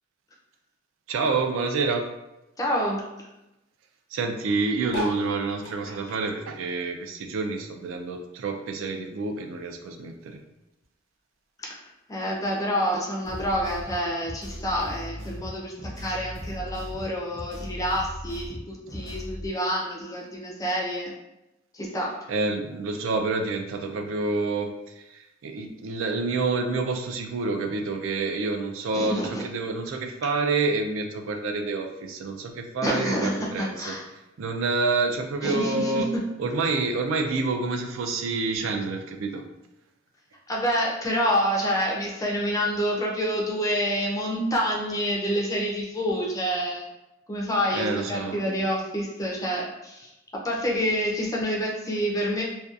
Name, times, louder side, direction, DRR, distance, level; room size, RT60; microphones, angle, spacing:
voice 1, 1.1-2.1 4.1-10.4 22.3-34.0 34.4-36.1 36.4-39.4 47.7-48.6, right 3 dB, 80° right, 4 dB, 0.3 m, -28 dB
voice 2, 2.6-3.0 11.6-11.8 12.1-21.1 21.7-22.1 28.9-29.4 32.8-34.0 35.4-36.2 40.5-46.8 47.3-50.1 50.4-52.4, equal, 15° left, -2 dB, 0.4 m, -27 dB
sound 1, 4.9-7.6 8.0-9.5 10.0-10.1 10.2-10.3 10.5-10.9 11.7-11.8, left 1 dB, 70° left, 0.6 m, -39 dB
sound 2, 13.2-19.5, equal, 30° right, 0.9 m, -38 dB
2.6 x 2.2 x 2.4 m, 0.93 s
head